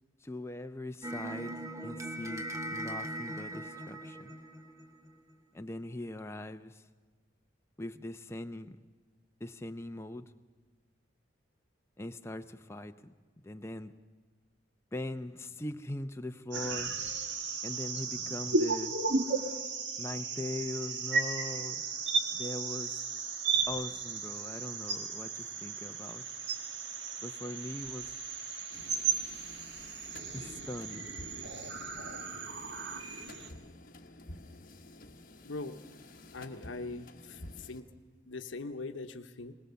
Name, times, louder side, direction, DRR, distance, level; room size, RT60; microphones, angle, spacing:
voice 1, 0.2-2.5 2.7-4.3 5.5-6.8 7.8-8.8 9.4-10.3 12.0-13.1 13.4-13.9 14.9-16.9 17.6-18.9 20.0-21.8 22.3-23.0 23.7-26.2 27.2-28.1 30.3-31.1, left 1 dB, 15° left, 7 dB, 0.6 m, -41 dB
sound 1, 1.0-5.3, right 1 dB, 15° right, 1.1 m, -40 dB
sound 2, 16.5-33.5, right 4 dB, 65° right, 1.5 m, -35 dB
sound 3, 28.7-37.8, left 1 dB, 45° left, 1.2 m, -51 dB
voice 2, 35.4-35.8 36.3-37.9 38.3-39.5, left 3 dB, 75° left, 8 dB, 0.9 m, -41 dB
20.5 x 20.5 x 6.9 m, 1.4 s
head